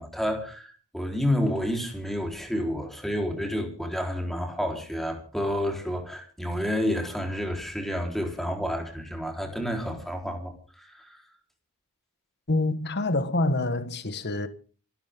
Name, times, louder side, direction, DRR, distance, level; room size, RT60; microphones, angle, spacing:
voice 1, 0.0-11.2, equal, ahead, 4.1 m, -30 dB
voice 2, 12.5-14.5, left 2 dB, 50° left, 1.6 m, -26 dB
27.0 x 12.5 x 3.8 m
head